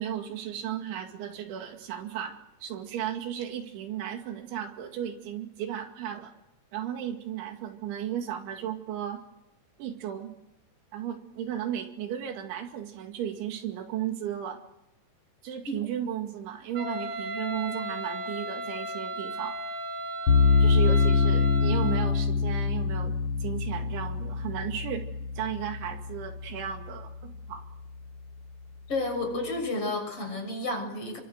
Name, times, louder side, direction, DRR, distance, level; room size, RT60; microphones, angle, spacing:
voice 1, 0.0-6.3 6.7-9.2 9.8-10.3 10.9-14.6 15.4-19.6 20.6-23.2 23.4-25.1 25.4-27.7, right 10 dB, 90° right, 5 dB, 4.7 m, -35 dB
Wind instrument woodwind instrument, 16.7-22.1, equal, 60° right, 5.6 m, -35 dB
sound 1, 20.3-27.4, left 4 dB, 45° left, 2.9 m, -25 dB
voice 2, 28.9-31.2, left 2 dB, 30° left, 4 dB, 7.4 m, -31 dB
30.0 x 24.0 x 7.9 m, 0.87 s
omnidirectional pair, 5.2 m